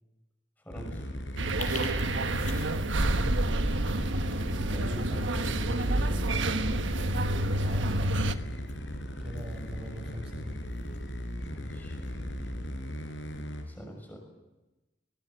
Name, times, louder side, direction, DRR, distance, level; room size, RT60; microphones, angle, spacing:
voice 1, 0.6-1.1 4.5-6.4 11.5-12.0 13.7-14.2, equal, 10° left, 1 dB, 6.0 m, -43 dB
sound 1, 0.7-13.6, equal, 80° left, 4.6 m, -38 dB
sound 2, 1.2-13.4, left 4 dB, 40° left, 5.5 m, -50 dB
sound 3, 1.4-8.3, right 1 dB, 85° right, 1.2 m, -28 dB
voice 2, 1.8-2.2 7.6-8.7 9.2-10.6, equal, 30° right, 4 dB, 6.3 m, -42 dB
21.0 x 20.5 x 8.2 m, 1.1 s
head